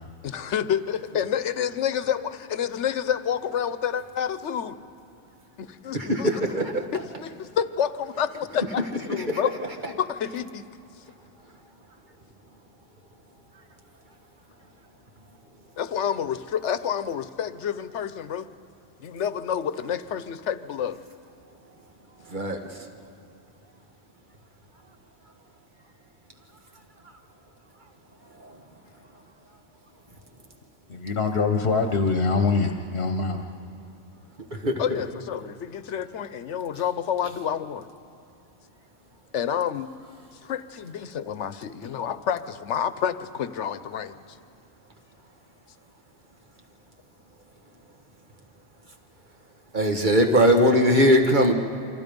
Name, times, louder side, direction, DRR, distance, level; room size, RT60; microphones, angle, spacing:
voice 1, 0.2-4.8 5.6-6.3 6.9-9.5 9.8-10.6 15.8-18.5 19.0-21.0 34.8-37.9 39.3-39.9 40.4-44.2, left 8 dB, 85° left, 13 dB, 1.1 m, -29 dB
voice 2, 5.9-6.9 9.3-9.4 22.3-22.6 28.4-28.5 34.6-34.7 49.7-51.5, equal, 45° right, 3 dB, 1.8 m, -20 dB
voice 3, 30.9-33.5, left 4 dB, 60° left, 5 dB, 1.2 m, -24 dB
28.0 x 25.0 x 5.3 m, 2.8 s
omnidirectional pair, 1.2 m